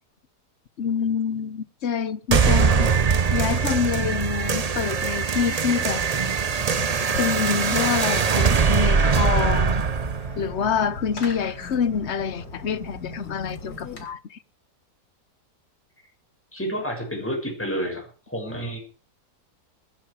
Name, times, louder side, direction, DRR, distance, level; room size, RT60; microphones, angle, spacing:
voice 1, 0.8-2.9 3.3-6.0 7.2-9.8 10.3-14.4, left 7 dB, 50° left, 1.2 m, -26 dB
sound 1, 2.3-11.3, right 5 dB, 45° right, 0.5 m, -22 dB
Fireworks, 6.6-14.0, left 3 dB, 80° left, 3.6 m, -39 dB
voice 2, 16.5-18.8, equal, 5° left, 6.7 m, -30 dB
21.5 x 11.0 x 4.9 m
omnidirectional pair, 1.7 m